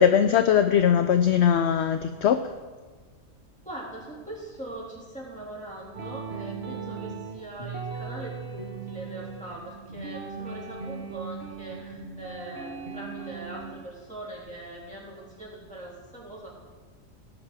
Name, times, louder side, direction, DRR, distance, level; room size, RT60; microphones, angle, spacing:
voice 1, 0.0-2.4, left 8 dB, 65° left, 9 dB, 0.7 m, -20 dB
voice 2, 3.7-16.5, right 1 dB, 5° left, -6 dB, 3.6 m, -41 dB
sound 1, 5.9-13.8, right 5 dB, 50° right, 1.5 m, -38 dB
18.0 x 6.9 x 4.8 m, 1.4 s
omnidirectional pair, 1.4 m